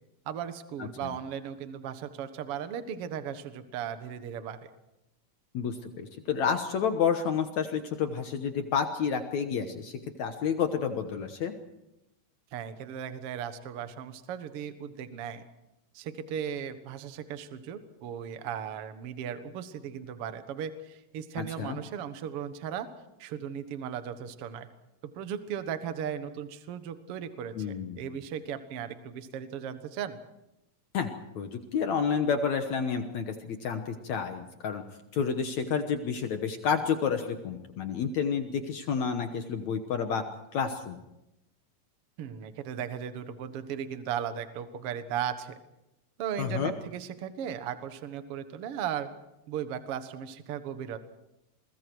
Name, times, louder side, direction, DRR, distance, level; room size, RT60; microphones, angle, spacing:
voice 1, 0.3-4.6 12.5-15.4 15.9-22.9 23.2-24.7 25.1-30.2 42.2-45.6 46.2-49.1 49.5-51.0, right 8 dB, 55° right, 10 dB, 1.8 m, -37 dB
voice 2, 5.5-11.5 21.4-21.8 27.6-28.1 30.9-34.8 35.1-40.2 40.5-41.0 46.4-46.7, left 6 dB, 60° left, 6 dB, 2.2 m, -30 dB
29.0 x 23.0 x 4.7 m, 0.89 s
omnidirectional pair, 4.1 m